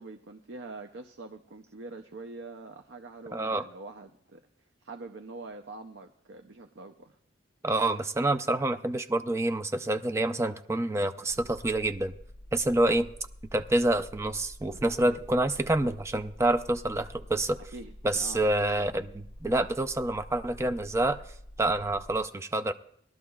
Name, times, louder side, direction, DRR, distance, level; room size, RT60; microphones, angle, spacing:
voice 1, 0.0-4.4 4.8-7.2 17.7-18.4, right 3 dB, 80° right, 6 dB, 0.6 m, -44 dB
voice 2, 3.3-3.6 7.6-12.1 12.5-13.1 13.5-17.6 18.0-21.2 21.6-22.7, right 1 dB, 15° right, 7 dB, 0.4 m, -27 dB
sound 1, 11.3-22.2, equal, 20° left, 1.6 m, -48 dB
20.0 x 12.0 x 2.3 m, 0.67 s
head